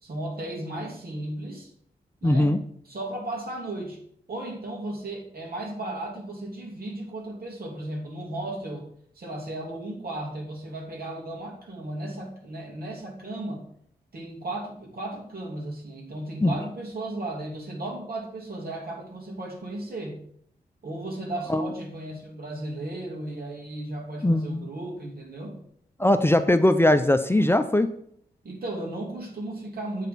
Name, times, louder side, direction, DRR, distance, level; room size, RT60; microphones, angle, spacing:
voice 1, 0.0-1.7 2.2-2.5 2.8-4.0 4.3-8.9 9.1-13.6 14.1-20.2 20.8-25.6 28.4-30.1, right 1 dB, 65° right, -1 dB, 2.9 m, -35 dB
voice 2, 2.2-2.6 16.4-16.5 21.5-21.7 24.2-24.7 26.0-27.9, left 1 dB, 15° left, 9 dB, 0.6 m, -20 dB
8.3 x 3.9 x 6.8 m, 0.65 s
cardioid pair, 50°, 17 cm